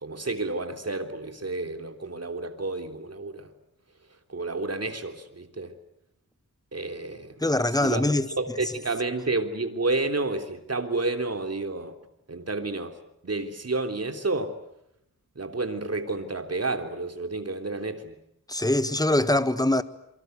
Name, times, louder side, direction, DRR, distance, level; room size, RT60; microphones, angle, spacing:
voice 1, 0.0-3.5 4.3-5.7 6.7-7.4 7.8-8.1 8.4-12.0 12.3-13.0 13.2-14.6 15.4-18.2, right 3 dB, 45° right, 3.4 m, -30 dB
voice 2, 7.4-8.3 18.5-19.8, left 1 dB, 10° left, 1.5 m, -23 dB
28.5 x 24.0 x 8.1 m
wide cardioid pair, 70°, 34 cm